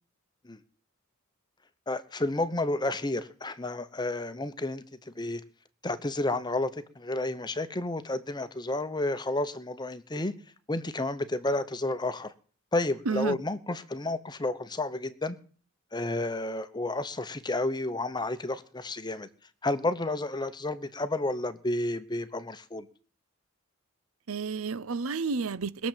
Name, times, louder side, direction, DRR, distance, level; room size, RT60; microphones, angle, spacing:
voice 1, 1.9-5.4 5.8-10.3 10.7-12.3 12.7-15.4 15.9-19.3 19.6-22.9, left 2 dB, 20° left, 0.9 m, -31 dB
voice 2, 13.1-13.4 24.3-25.9, right 5 dB, 75° right, 0.7 m, -31 dB
21.0 x 7.4 x 7.4 m
head